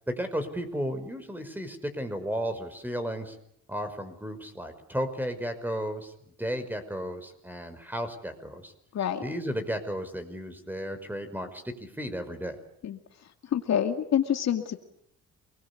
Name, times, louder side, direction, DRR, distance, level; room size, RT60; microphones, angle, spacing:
voice 1, 0.1-3.4 3.7-6.1 6.4-8.7 9.2-12.6, equal, 5° right, 9 dB, 5.4 m, -34 dB
voice 2, 13.5-14.8, left 9 dB, 60° left, 6 dB, 2.4 m, -26 dB
28.0 x 21.5 x 8.5 m, 0.70 s
cardioid pair, 90°, 30 cm